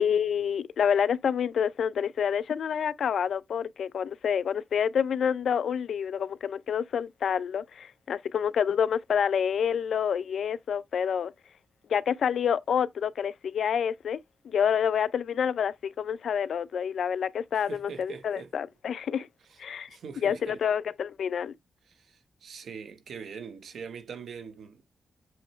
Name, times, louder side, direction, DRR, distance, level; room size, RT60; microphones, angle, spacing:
voice 1, 0.0-11.3 11.9-14.2 14.4-19.3 19.6-19.9 20.2-21.5, left 8 dB, 70° left, 0.5 m, -28 dB
voice 2, 17.5-18.5 19.5-19.6 19.9-20.6 21.9-24.9, right 6 dB, 75° right, 1.1 m, -43 dB
7.7 x 3.0 x 4.4 m
wide cardioid pair, 175°, 0 cm